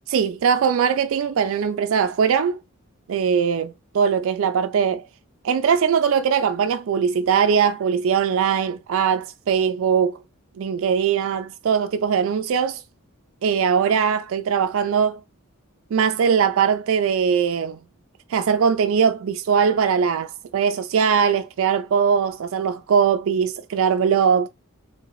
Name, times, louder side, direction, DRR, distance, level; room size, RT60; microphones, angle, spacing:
voice 1, 0.1-2.6 3.1-5.1 5.4-10.2 10.6-12.8 13.4-15.2 15.9-17.8 18.3-24.5, right 7 dB, 65° right, 0.3 m, -21 dB
3.8 x 3.6 x 3.0 m
head